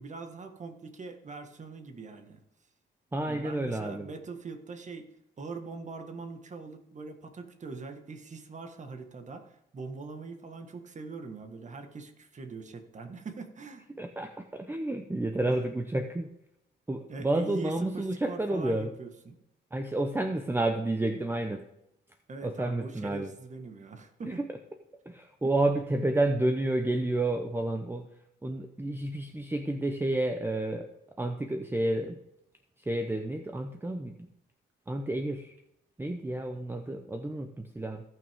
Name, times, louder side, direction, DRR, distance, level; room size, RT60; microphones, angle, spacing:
voice 1, 0.0-2.4 3.3-5.1 5.4-13.9 15.5-15.6 17.1-19.4 22.3-24.4, right 4 dB, 35° right, 6 dB, 1.6 m, -42 dB
voice 2, 3.1-4.1 13.9-16.3 16.9-18.9 19.7-21.6 22.4-23.3 24.3-24.5 25.1-28.1 28.4-30.9 31.2-32.2 32.8-34.3 34.9-35.5 36.0-38.0, right 2 dB, 10° right, 6 dB, 0.8 m, -30 dB
16.5 x 6.2 x 3.6 m, 0.82 s
cardioid pair, 90°, 20 cm